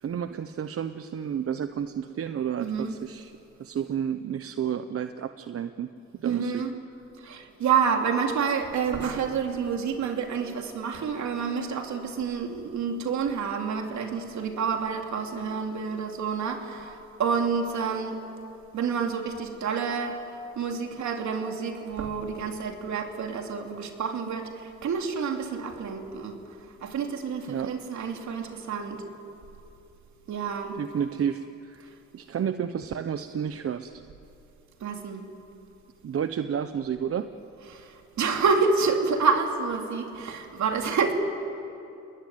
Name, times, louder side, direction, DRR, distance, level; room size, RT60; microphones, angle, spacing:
voice 1, 0.0-3.3 3.6-5.9 6.2-6.6 27.5-27.7 30.7-34.0 36.0-37.3, right 8 dB, 50° right, 10 dB, 0.9 m, -31 dB
voice 2, 2.6-2.9 6.2-6.7 7.2-18.2 18.7-20.2 20.6-26.4 26.8-29.0 30.3-30.8 34.8-35.2 37.7-41.1, right 5 dB, 70° right, 3 dB, 3.2 m, -28 dB
29.0 x 21.5 x 9.5 m, 2.8 s
cardioid pair, 90°, 30 cm